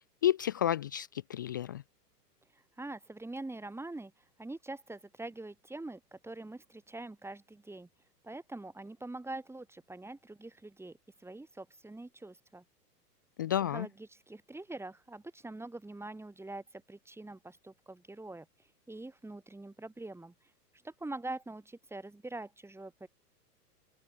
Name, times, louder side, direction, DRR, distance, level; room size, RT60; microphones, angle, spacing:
voice 1, 0.0-1.8 13.4-13.9, left 11 dB, 15° left, 0.3 m, -31 dB
voice 2, 2.5-4.1 4.4-7.9 8.2-12.6 13.7-18.5 18.9-20.3 20.8-23.1, right 2 dB, 5° right, 6.7 m, -44 dB
open air
figure-of-eight pair, 110°, 48 cm